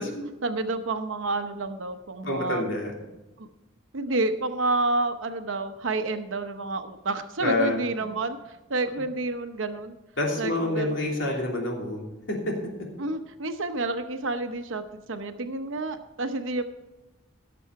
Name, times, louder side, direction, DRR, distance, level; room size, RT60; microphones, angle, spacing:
voice 1, 0.4-2.7 3.4-3.5 3.9-8.4 8.7-10.0 10.4-10.9 13.0-16.6, right 2 dB, 85° right, 8 dB, 0.9 m, -29 dB
voice 2, 2.2-2.9 7.4-8.1 8.9-9.0 10.2-12.9, left 2 dB, 75° left, -1 dB, 3.2 m, -28 dB
17.0 x 6.9 x 4.7 m, 1.1 s
head